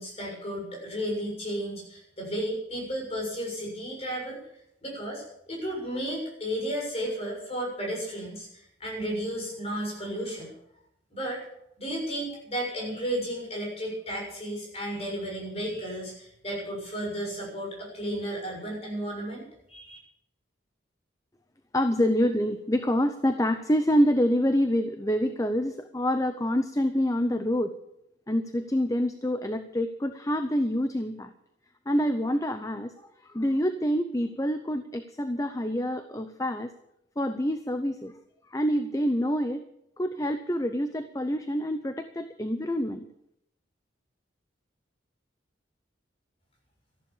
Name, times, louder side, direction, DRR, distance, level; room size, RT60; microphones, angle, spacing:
voice 1, 0.0-4.4 4.8-10.5 11.1-11.4 11.8-20.0, equal, 30° left, -1 dB, 6.8 m, -33 dB
voice 2, 21.7-27.7 28.3-31.3 31.9-36.7 37.2-38.1 38.5-39.6 40.0-43.0, equal, 15° left, 9 dB, 0.7 m, -27 dB
14.0 x 11.5 x 7.3 m, 0.77 s
head